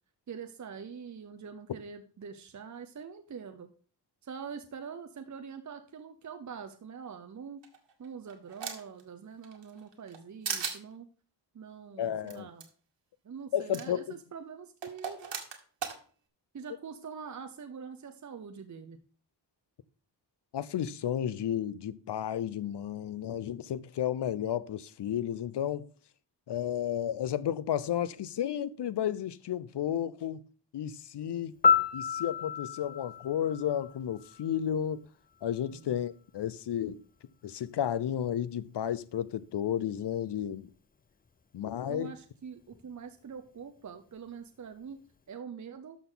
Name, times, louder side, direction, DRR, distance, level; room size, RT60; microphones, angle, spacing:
voice 1, 0.3-3.7 4.2-7.6 8.0-11.1 11.5-12.7 13.2-15.4 16.5-19.0 35.7-36.0 41.9-45.0 45.3-46.0, right 6 dB, 40° right, 0.8 m, -44 dB
sound 1, 7.6-9.0 9.4-10.2 10.4-10.8 12.3-12.4 12.6-12.7 13.7-13.8 14.8-16.0, right 6 dB, 90° right, 1.9 m, -37 dB
voice 2, 12.0-12.5 13.5-14.2 20.5-25.9 26.5-30.4 30.7-31.5 31.9-35.1 35.4-37.0 37.4-40.7 41.5-42.1, left 10 dB, 70° left, 0.7 m, -32 dB
Piano, 31.6-34.6 42.7-42.9, left 6 dB, 20° left, 0.4 m, -29 dB
12.5 x 6.4 x 3.9 m
wide cardioid pair, 155°, 43 cm